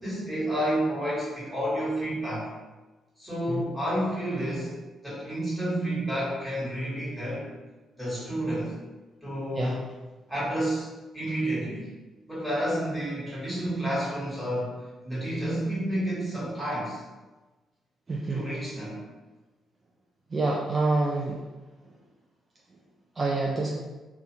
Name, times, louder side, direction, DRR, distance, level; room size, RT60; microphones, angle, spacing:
voice 1, 0.0-2.5 3.2-4.7 5.0-7.5 8.0-8.8 9.2-9.8 10.3-10.9 11.1-11.9 12.3-14.8 15.0-17.0 18.3-19.0, right 1 dB, 5° right, -9 dB, 1.4 m, -30 dB
voice 2, 18.1-18.4 20.3-21.4 23.2-23.7, right 2 dB, 35° right, -3 dB, 0.3 m, -27 dB
2.5 x 2.4 x 2.7 m, 1.2 s
cardioid pair, 90°, 0 cm